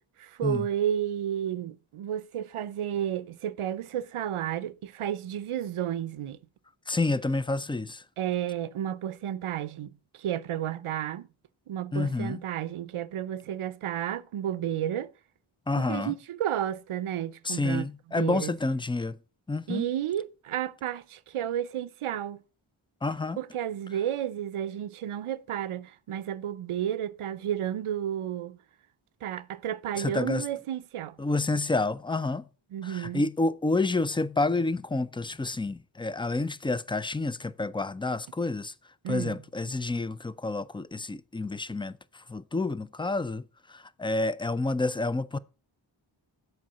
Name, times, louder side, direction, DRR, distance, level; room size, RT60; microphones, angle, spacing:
voice 1, 0.2-6.4 8.2-11.3 11.7-15.1 15.7-17.9 18.2-18.6 19.7-22.4 23.4-28.6 29.2-31.2 32.7-33.2 39.0-39.4, right 10 dB, 90° right, 0.6 m, -32 dB
voice 2, 6.9-8.0 11.9-12.4 15.7-16.1 17.5-19.2 19.5-19.9 23.0-23.4 30.0-30.4 31.2-32.4 32.8-38.7 39.1-41.9 42.3-43.4 43.7-45.4, left 3 dB, 10° left, 0.3 m, -29 dB
7.6 x 4.7 x 5.5 m
wide cardioid pair, 65°, 49 cm